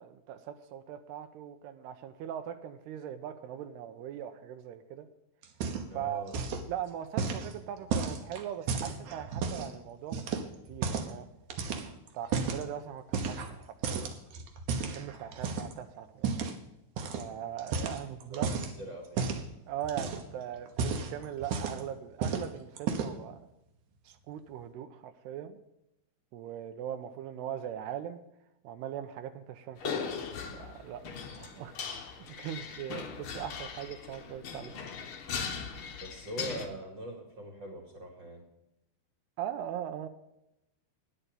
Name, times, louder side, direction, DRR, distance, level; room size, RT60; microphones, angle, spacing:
voice 1, 0.0-5.1 5.9-6.3 6.7-10.4 10.7-11.3 12.1-14.2 14.8-16.3 17.2-18.5 19.7-23.4 24.1-25.6 26.3-28.2 28.6-30.1 30.5-31.1 31.3-31.7 32.1-34.8 39.4-40.1, right 10 dB, 85° right, 8 dB, 2.9 m, -40 dB
sound 1, 5.4-6.0 6.3-6.7 7.2-9.7 10.1-11.2 11.5-12.6 13.1-13.6 13.8-15.7 16.2-16.6 17.0-17.2 17.6-18.7 19.2-19.5 19.8-20.3 20.7-21.9 22.2-22.5 22.8-23.2, right 5 dB, 65° right, 2.2 m, -33 dB
voice 2, 5.9-6.4 18.3-19.3 36.0-38.4, right 1 dB, 35° right, 1 dB, 2.2 m, -42 dB
sound 2, 29.8-36.7, left 6 dB, 85° left, 1.2 m, -39 dB
10.5 x 8.9 x 6.8 m, 0.86 s
omnidirectional pair, 4.6 m